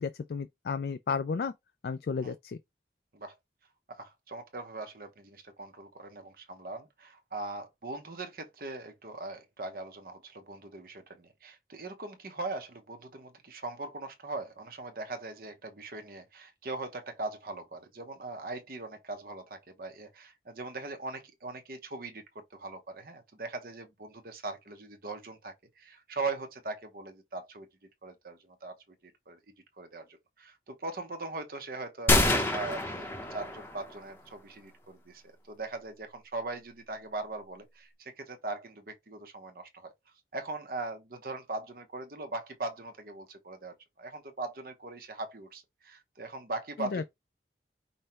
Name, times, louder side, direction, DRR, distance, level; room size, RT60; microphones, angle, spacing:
voice 1, 0.0-1.5 1.8-2.6 46.8-47.0, left 5 dB, 60° left, 0.3 m, -33 dB
voice 2, 3.9-27.7 28.0-28.7 29.0-29.4 29.8-39.9 40.3-47.0, right 2 dB, 55° right, 0.9 m, -40 dB
sound 1, 32.1-34.0, left 1 dB, 10° left, 0.8 m, -27 dB
5.5 x 2.2 x 4.2 m
head